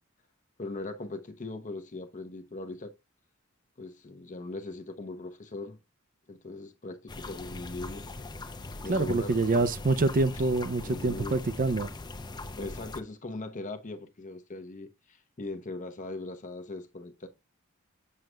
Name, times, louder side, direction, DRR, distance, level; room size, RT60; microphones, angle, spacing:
voice 1, 0.6-2.9 3.8-5.8 6.3-8.1 8.8-9.7 10.8-11.4 12.6-17.3, left 2 dB, 40° left, 0.8 m, -40 dB
sound 1, 7.1-13.0, left 2 dB, 20° left, 0.5 m, -41 dB
voice 2, 8.9-11.9, right 3 dB, 40° right, 0.5 m, -26 dB
7.6 x 6.3 x 2.2 m
head